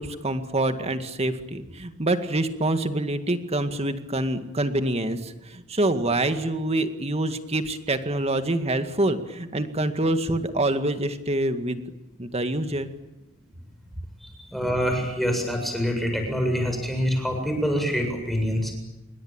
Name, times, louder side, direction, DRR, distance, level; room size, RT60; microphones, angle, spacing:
voice 1, 0.0-11.8 12.2-12.9, right 1 dB, 30° right, 8 dB, 2.0 m, -26 dB
voice 2, 14.5-18.7, equal, ahead, 3 dB, 7.5 m, -25 dB
27.5 x 23.5 x 9.0 m, 0.98 s
head